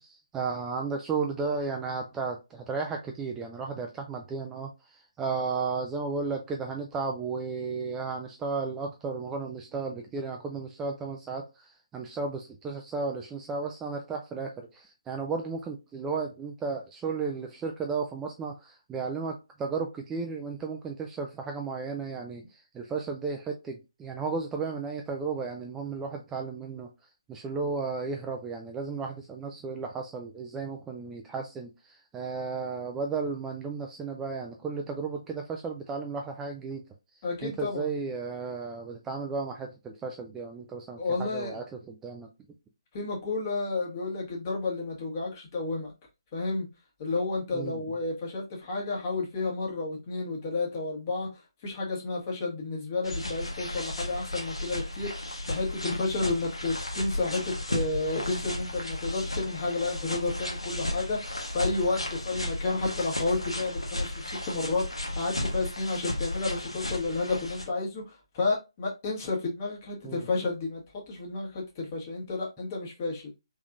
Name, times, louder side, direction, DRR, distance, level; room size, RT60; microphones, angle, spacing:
voice 1, 0.0-26.9 27.3-36.8 37.4-42.3 47.5-47.8 70.0-70.3, right 4 dB, 10° right, 0.3 m, -34 dB
voice 2, 37.2-37.9 41.0-41.6 42.9-45.9 46.3-46.7 47.0-73.3, left 3 dB, 30° left, 1.4 m, -31 dB
sound 1, 53.0-67.6, left 1 dB, 85° left, 1.2 m, -34 dB
3.5 x 3.4 x 2.4 m
figure-of-eight pair, 145°, 3 cm